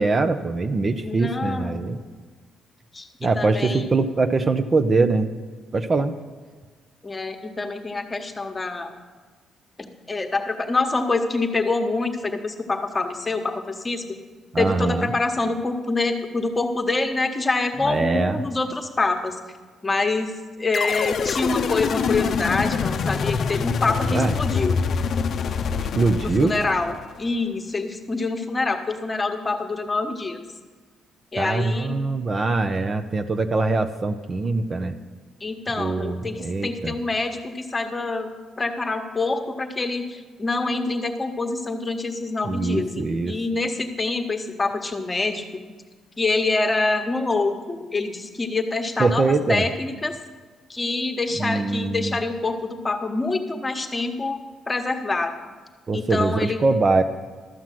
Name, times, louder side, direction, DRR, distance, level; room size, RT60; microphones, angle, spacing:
voice 1, 0.0-2.0 3.2-5.3 5.7-6.1 14.5-15.1 17.8-18.4 24.1-24.3 26.0-26.5 31.4-34.9 35.8-36.9 42.4-43.3 49.0-49.6 51.4-52.2 55.9-57.0, right 3 dB, 35° right, 8 dB, 0.7 m, -22 dB
voice 2, 1.0-1.8 2.9-4.0 7.0-8.9 9.8-14.0 14.6-19.4 19.8-20.3 20.6-24.8 26.2-30.4 31.3-32.0 35.4-38.3 38.6-45.5 46.2-50.1 50.7-54.4 54.7-55.3 55.9-56.6, left 3 dB, 25° left, 5 dB, 1.2 m, -26 dB
sound 1, 20.7-27.2, left 6 dB, 60° left, 0.5 m, -25 dB
13.0 x 6.0 x 7.6 m, 1.4 s
cardioid pair, 90°, 0 cm